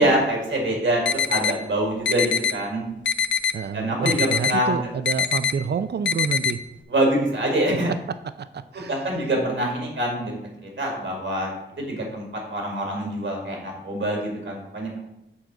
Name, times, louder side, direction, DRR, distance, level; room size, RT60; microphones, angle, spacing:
voice 1, 0.0-2.8 3.7-4.9 6.9-7.9 8.7-10.4 10.8-11.5 11.8-15.0, right 1 dB, 85° right, 0 dB, 2.1 m, -25 dB
sound 1, 1.1-1.5 2.1-2.5 3.1-3.5 4.1-4.5 5.1-5.5 6.1-6.5, left 7 dB, 70° left, 0.4 m, -23 dB
voice 2, 3.5-6.6 8.5-9.0, right 6 dB, 60° right, 12 dB, 0.4 m, -28 dB
7.1 x 3.8 x 6.0 m, 0.86 s
wide cardioid pair, 95°, 19 cm